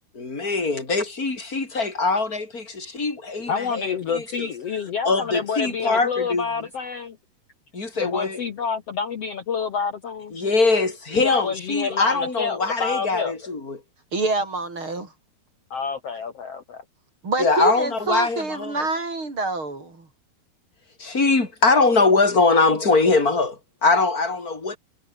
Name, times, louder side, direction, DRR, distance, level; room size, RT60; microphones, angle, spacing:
voice 1, 0.2-3.8 4.1-4.5 5.0-6.5 7.7-8.4 10.3-13.8 17.4-18.9 21.0-24.8, left 3 dB, 20° left, 5.2 m, -22 dB
voice 2, 3.5-7.2 8.0-10.4 11.1-13.3 15.7-16.8, left 6 dB, 65° left, 1.5 m, -28 dB
voice 3, 14.1-15.1 17.2-20.1, right 3 dB, 30° right, 5.1 m, -26 dB
omnidirectional pair, 4.8 m